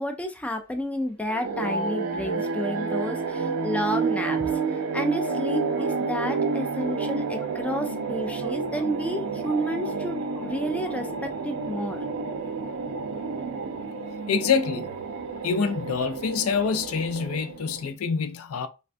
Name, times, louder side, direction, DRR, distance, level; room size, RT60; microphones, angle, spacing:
voice 1, 0.0-12.0, equal, 5° left, 0.3 m, -31 dB
sound 1, 1.3-17.9, right 4 dB, 80° right, 0.5 m, -30 dB
voice 2, 14.3-14.9 15.4-18.7, left 5 dB, 80° left, 0.4 m, -26 dB
3.4 x 2.2 x 2.5 m
head